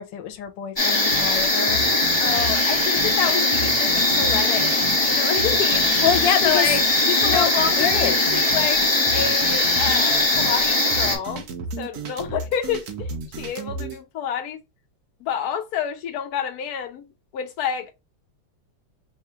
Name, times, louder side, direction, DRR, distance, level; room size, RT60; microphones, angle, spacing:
voice 1, 0.0-1.8 6.0-6.7 7.2-7.5 7.8-8.2, left 8 dB, 85° left, 1.4 m, -25 dB
sound 1, 0.8-11.2, left 2 dB, 20° left, 0.8 m, -20 dB
sound 2, 1.1-14.0, right 4 dB, 65° right, 1.2 m, -34 dB
voice 2, 2.2-4.8 5.0-5.9 6.4-6.8 7.2-8.8 9.1-11.5 11.8-14.6 15.2-17.0 17.3-18.0, left 8 dB, 65° left, 1.2 m, -28 dB
3.6 x 2.4 x 4.4 m
omnidirectional pair, 1.9 m